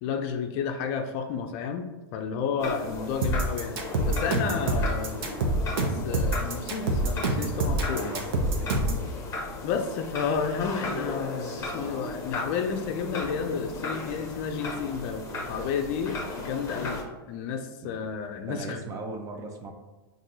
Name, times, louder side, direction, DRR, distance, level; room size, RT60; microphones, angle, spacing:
voice 1, 0.0-5.3 5.8-8.1 9.6-18.8, left 6 dB, 45° left, 6 dB, 0.5 m, -31 dB
sound 1, 2.6-17.0, left 2 dB, 25° left, 0.9 m, -36 dB
sound 2, 3.2-9.1, right 2 dB, 65° right, 0.8 m, -26 dB
voice 2, 7.9-9.2 17.8-18.0 18.5-19.7, right 3 dB, 25° right, 3 dB, 0.6 m, -39 dB
5.8 x 2.6 x 2.6 m, 1.2 s
hypercardioid pair, 125°, 13 cm